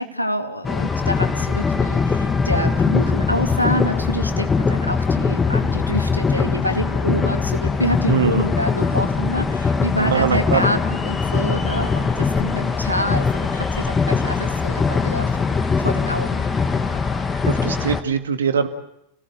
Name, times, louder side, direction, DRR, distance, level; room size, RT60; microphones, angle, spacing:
voice 1, 0.0-15.4 15.8-16.4, equal, 90° left, 5 dB, 2.3 m, -26 dB
sound 1, 0.6-18.0, left 5 dB, 15° left, 2.1 m, -21 dB
voice 2, 8.1-8.5 10.0-10.6 17.4-18.7, right 7 dB, 65° right, 7 dB, 2.0 m, -21 dB
30.0 x 17.5 x 7.8 m, 0.81 s
figure-of-eight pair, 90°, 0 cm